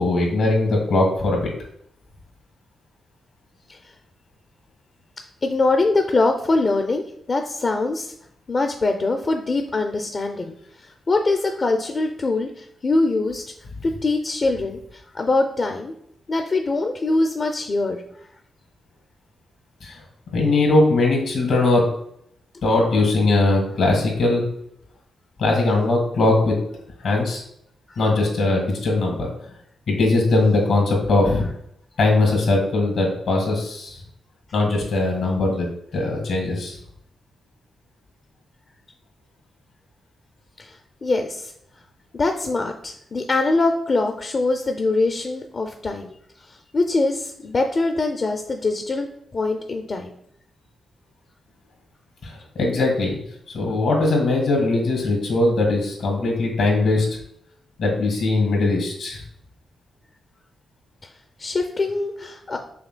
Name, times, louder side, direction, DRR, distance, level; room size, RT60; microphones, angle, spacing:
voice 1, 0.0-1.5 19.8-20.0 20.3-21.8 22.6-24.4 25.4-26.5 27.0-27.4 28.0-29.3 29.9-31.5 32.0-34.0 34.5-35.7 35.9-36.8 52.2-53.2 53.5-57.1 57.8-59.2, left 2 dB, 80° left, 0 dB, 1.7 m, -20 dB
voice 2, 5.4-8.1 8.5-13.4 13.8-15.9 16.3-18.0 27.9-28.0 40.6-41.5 42.1-46.2 46.4-49.1 49.3-50.1 61.0-61.1 61.4-62.6, left 3 dB, 50° left, 5 dB, 0.5 m, -23 dB
5.7 x 3.5 x 2.2 m, 0.71 s
supercardioid pair, 45°, 0 cm